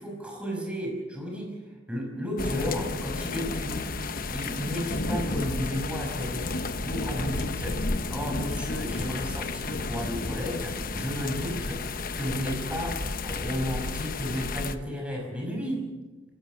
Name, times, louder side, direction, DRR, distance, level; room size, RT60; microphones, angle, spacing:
voice 1, 0.0-1.6 1.9-3.9 4.3-7.8 8.1-11.8 12.1-15.9, equal, 5° right, 0 dB, 5.8 m, -33 dB
sound 1, 2.4-14.8, left 3 dB, 50° left, 1.0 m, -32 dB
28.0 x 17.0 x 6.1 m, 1.2 s
head